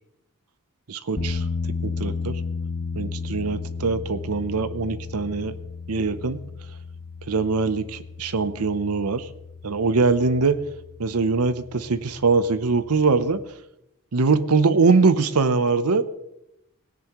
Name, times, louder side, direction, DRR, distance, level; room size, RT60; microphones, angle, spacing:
voice 1, 0.9-1.5 1.8-2.4 3.0-5.5 5.9-6.4 7.3-9.3 9.6-10.6 11.0-13.4 14.1-16.0, right 4 dB, 80° right, 13 dB, 0.7 m, -22 dB
sound 1, 1.2-13.5, left 4 dB, 35° left, 0.8 m, -34 dB
18.5 x 10.0 x 3.1 m, 0.85 s
head